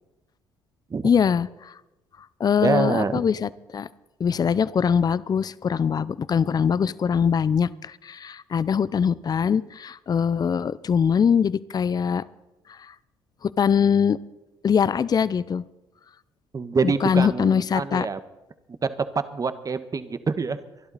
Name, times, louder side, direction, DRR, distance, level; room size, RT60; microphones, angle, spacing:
voice 1, 1.0-1.7 2.4-3.9 4.2-12.2 12.8-12.9 13.4-14.2 14.6-15.6 16.8-18.1, left 7 dB, 40° left, 18 dB, 0.6 m, -22 dB
voice 2, 2.6-3.2 16.5-18.2 18.8-20.6, right 4 dB, 35° right, 11 dB, 1.3 m, -25 dB
24.0 x 11.5 x 4.2 m, 0.97 s
hypercardioid pair, 60°, 11 cm